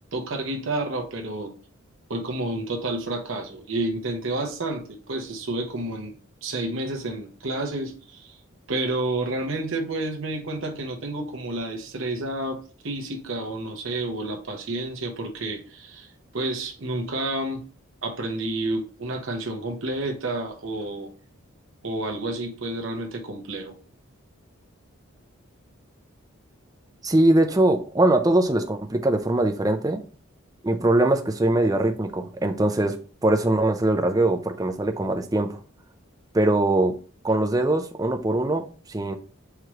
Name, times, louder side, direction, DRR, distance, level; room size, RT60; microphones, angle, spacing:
voice 1, 0.1-1.6 2.1-6.2 6.4-8.4 8.7-17.7 18.0-21.1 21.8-23.8, right 2 dB, 65° right, 0.9 m, -30 dB
voice 2, 27.0-30.0 30.6-35.6 36.3-37.0 37.2-39.2, right 1 dB, 15° right, 0.4 m, -22 dB
4.7 x 3.1 x 3.6 m
head